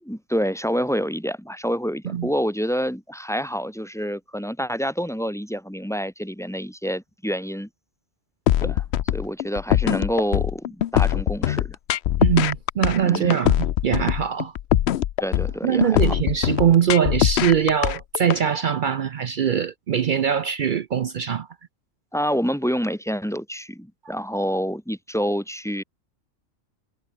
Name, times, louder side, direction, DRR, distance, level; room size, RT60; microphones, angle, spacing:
voice 1, 0.0-7.7 8.6-8.8 9.1-11.8 13.0-13.4 15.2-16.1 22.1-25.8, equal, ahead, 2.5 m, -27 dB
sound 1, 8.5-18.4, left 12 dB, 65° left, 0.8 m, -22 dB
voice 2, 12.2-14.5 15.6-21.5, right 8 dB, 60° right, 0.5 m, -22 dB
omnidirectional pair, 1.3 m